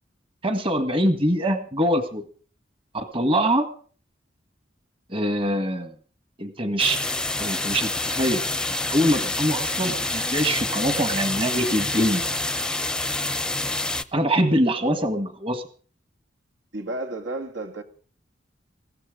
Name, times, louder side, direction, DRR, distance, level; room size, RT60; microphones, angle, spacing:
voice 1, 0.4-2.2 2.9-3.7 5.1-5.9 6.4-7.0 7.4-8.4 8.8-12.2 14.1-15.6, equal, 30° right, 1.7 m, -23 dB
sound 1, 6.8-14.0, left 2 dB, 5° left, 0.6 m, -27 dB
voice 2, 16.7-17.8, right 2 dB, 80° right, 2.4 m, -32 dB
21.0 x 16.0 x 3.9 m
head